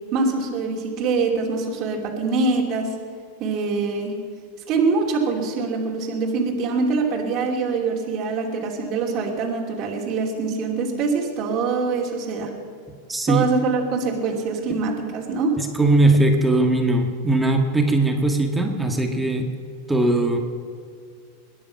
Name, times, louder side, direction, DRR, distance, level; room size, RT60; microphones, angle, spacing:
voice 1, 0.1-3.0 3.4-4.1 4.7-12.5 13.3-15.6, right 4 dB, 40° right, 0 dB, 2.8 m, -24 dB
voice 2, 13.1-13.4 15.6-19.5 19.9-20.4, right 2 dB, 5° right, 3 dB, 1.7 m, -19 dB
22.0 x 10.0 x 5.8 m, 2.2 s
supercardioid pair, 135°, 0 cm